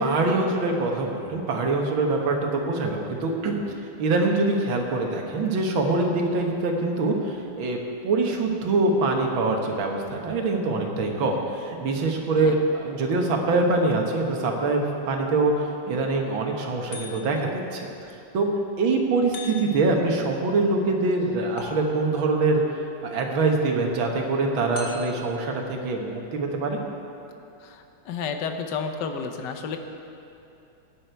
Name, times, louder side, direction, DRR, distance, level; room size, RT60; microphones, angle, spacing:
voice 1, 0.0-3.6 4.0-17.9 18.3-18.5 18.8-22.6 23.0-26.8, right 3 dB, 80° right, 1 dB, 2.1 m, -24 dB
sound 1, 16.9-17.6 19.3-20.0 21.6-22.3 24.7-25.4, left 3 dB, 85° left, 2.4 m, -40 dB
voice 2, 27.6-29.8, left 5 dB, 65° left, 5 dB, 1.5 m, -31 dB
17.0 x 9.7 x 4.6 m, 2.8 s
omnidirectional pair, 2.2 m